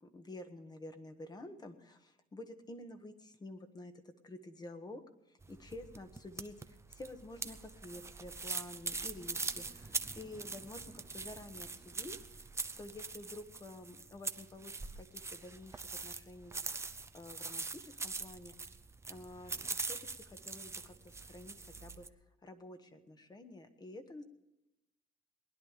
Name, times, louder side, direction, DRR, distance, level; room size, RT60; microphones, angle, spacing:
voice 1, 0.0-3.9 4.2-5.0 5.3-6.5 6.9-16.5 17.1-18.6 19.1-22.0 22.4-24.2, left 1 dB, 25° left, 8 dB, 1.5 m, -50 dB
sound 1, 5.4-22.1, right 4 dB, 15° right, 0.7 m, -43 dB
20.5 x 10.5 x 5.0 m, 0.92 s
cardioid pair, 110°, 17 cm